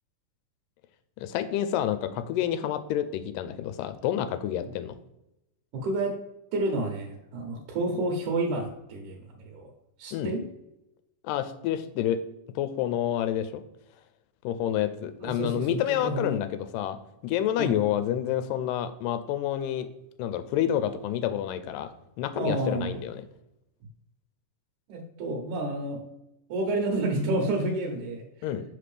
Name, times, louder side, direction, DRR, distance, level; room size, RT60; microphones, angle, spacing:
voice 1, 1.2-4.9 10.1-10.3 11.2-12.2 12.6-13.6 14.4-17.0 17.2-19.9 20.2-21.9 22.2-23.2 28.4-28.6, left 11 dB, 80° left, 11 dB, 2.1 m, -28 dB
voice 2, 5.7-6.1 6.5-9.7 10.0-10.4 15.2-16.4 17.6-17.8 22.4-23.0 24.9-26.0 26.5-28.2, right 2 dB, 70° right, 0 dB, 2.2 m, -30 dB
5.9 x 5.2 x 3.3 m, 0.89 s
omnidirectional pair, 4.0 m